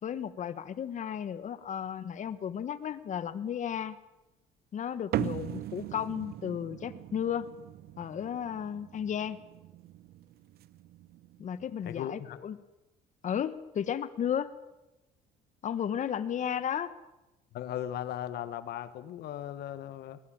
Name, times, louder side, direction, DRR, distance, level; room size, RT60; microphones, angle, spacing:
voice 1, 0.0-4.0 4.7-7.5 8.0-9.4 11.4-12.6 13.2-14.5 15.6-16.9, left 9 dB, 45° left, 13 dB, 1.4 m, -34 dB
sound 1, 5.1-11.8, right 13 dB, 65° right, 0.8 m, -40 dB
voice 2, 11.8-12.4 17.5-20.2, left 11 dB, 70° left, 13 dB, 1.3 m, -37 dB
22.0 x 18.0 x 8.9 m, 1.0 s
cardioid pair, 110°, 17 cm